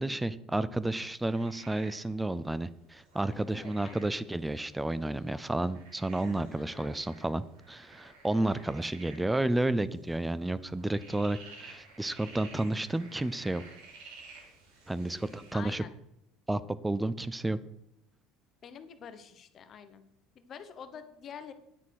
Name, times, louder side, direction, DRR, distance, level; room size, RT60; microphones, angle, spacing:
voice 1, 0.0-13.6 14.9-15.8 16.5-17.6, right 2 dB, 5° right, 16 dB, 0.4 m, -31 dB
sound 1, 0.8-15.5, right 3 dB, 90° right, 5.5 m, -54 dB
voice 2, 3.3-4.1 6.6-6.9 8.4-8.7 15.0-15.9 18.6-20.1 20.3-21.5, left 7 dB, 30° left, 9 dB, 1.0 m, -47 dB
10.0 x 9.7 x 6.4 m, 0.78 s
cardioid pair, 175°, 0 cm